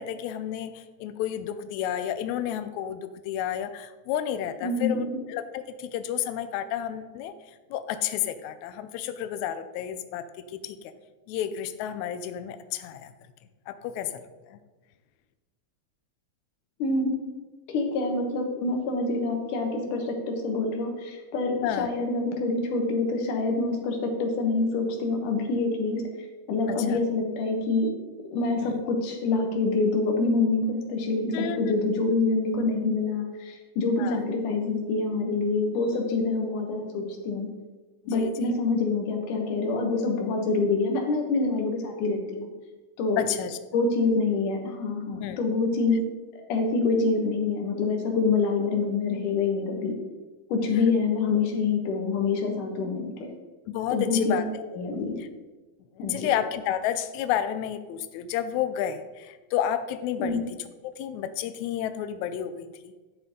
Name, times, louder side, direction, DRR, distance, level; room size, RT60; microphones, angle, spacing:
voice 1, 0.0-7.3 7.7-10.8 11.3-13.1 13.7-14.6 21.6-21.9 26.7-27.0 28.6-28.7 31.3-31.7 34.0-34.2 38.0-38.5 43.2-43.6 45.1-45.4 49.9-50.0 53.7-54.6 55.2-55.3 56.0-60.4 60.8-62.9, left 10 dB, 90° left, 10 dB, 1.6 m, -31 dB
voice 2, 4.6-5.2 16.8-17.2 17.7-26.0 26.5-27.9 28.3-37.5 38.1-42.5 43.0-43.2 43.7-46.0 46.3-49.9 50.5-53.3 53.9-54.4 54.7-55.2 56.0-56.3 60.2-60.4, left 3 dB, 70° left, 2 dB, 2.8 m, -26 dB
11.0 x 7.7 x 3.7 m, 1.2 s
omnidirectional pair, 4.0 m